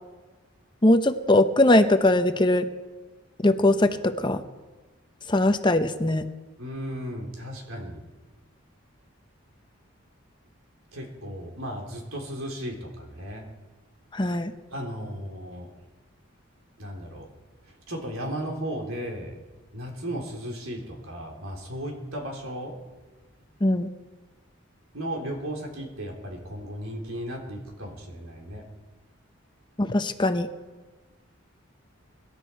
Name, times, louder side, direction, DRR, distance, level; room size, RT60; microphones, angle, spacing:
voice 1, 0.8-2.7 3.4-4.4 5.3-6.2 14.1-14.5 23.6-23.9 29.8-30.5, left 1 dB, 20° left, 9 dB, 0.7 m, -21 dB
voice 2, 6.6-8.0 10.9-13.5 14.7-15.7 16.8-17.3 17.7-19.4 19.7-22.8 24.9-28.7, equal, 90° right, 1 dB, 3.6 m, -35 dB
24.0 x 12.0 x 4.6 m, 1.3 s
head